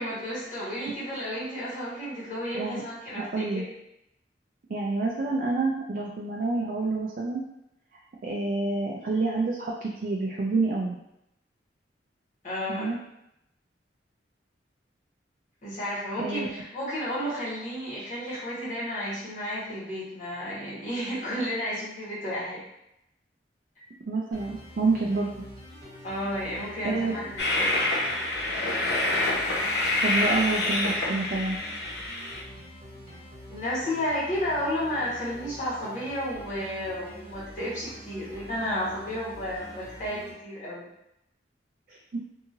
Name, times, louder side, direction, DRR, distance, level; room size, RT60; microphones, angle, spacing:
voice 1, 0.0-3.7 12.4-13.0 15.6-22.6 26.0-27.8 33.5-40.8, equal, 45° left, -9 dB, 1.3 m, -32 dB
voice 2, 3.1-3.6 4.7-7.4 8.2-10.9 12.7-13.0 16.2-16.5 24.1-25.3 26.8-27.1 30.0-31.6 41.9-42.2, right 3 dB, 50° right, -2 dB, 0.4 m, -28 dB
sound 1, 24.3-40.3, equal, 25° right, 1.1 m, -46 dB
Train, 27.4-32.4, left 2 dB, 65° left, 0.6 m, -27 dB
2.8 x 2.7 x 2.6 m, 0.83 s
head